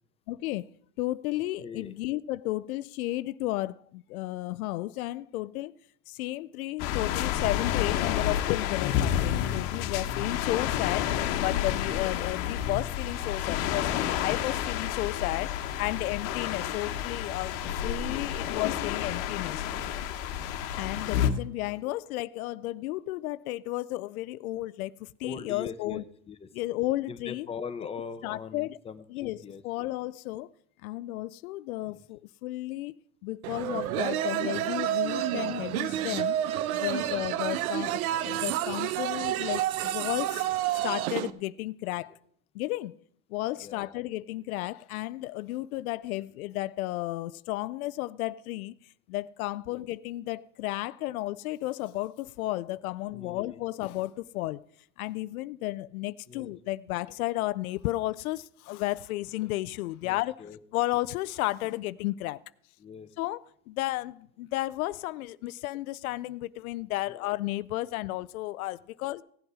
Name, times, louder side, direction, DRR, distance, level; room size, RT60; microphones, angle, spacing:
voice 1, 0.3-0.7 1.0-5.7 6.1-15.5 15.8-17.5 17.8-19.6 20.8-26.0 26.5-27.5 28.2-28.8 29.1-30.5 30.8-32.9 33.2-36.4 36.7-38.0 38.2-40.4 40.8-42.2 42.5-43.0 43.3-48.7 49.1-54.6 55.0-60.4 60.7-62.4 63.2-69.2, left 17 dB, 85° left, 0.5 m, -33 dB
voice 2, 1.6-1.9 14.2-14.4 17.8-18.5 21.8-21.9 25.2-26.5 27.1-29.9 31.8-32.0 36.9-37.2 43.6-43.9 49.7-49.9 53.1-53.6 56.3-56.5 60.0-60.6 62.8-63.1 67.1-67.3, left 6 dB, 15° left, 0.8 m, -42 dB
sound 1, 6.8-21.3, left 11 dB, 60° left, 1.2 m, -30 dB
sound 2, 13.0-21.1, right 11 dB, 55° right, 3.3 m, -50 dB
sound 3, 33.4-41.3, right 12 dB, 80° right, 0.8 m, -29 dB
16.5 x 7.9 x 4.8 m
supercardioid pair, 120°, 42 cm